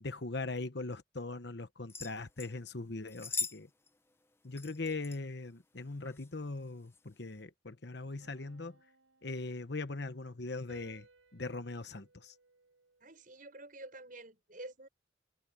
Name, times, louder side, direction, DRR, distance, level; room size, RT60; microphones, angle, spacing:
voice 1, 0.0-3.7 4.4-8.8 9.2-11.1 11.3-12.3, left 3 dB, 60° left, 1.1 m, -40 dB
sound 1, 1.9-2.5 3.1-3.6 3.9-4.0 4.6-5.2 6.0-6.3 6.9-7.0, left 5 dB, 15° left, 0.5 m, -39 dB
sound 2, 8.2-10.0 10.7-13.3, right 3 dB, 85° right, 5.5 m, -63 dB
voice 2, 13.0-14.9, right 2 dB, 45° right, 6.2 m, -49 dB
open air
head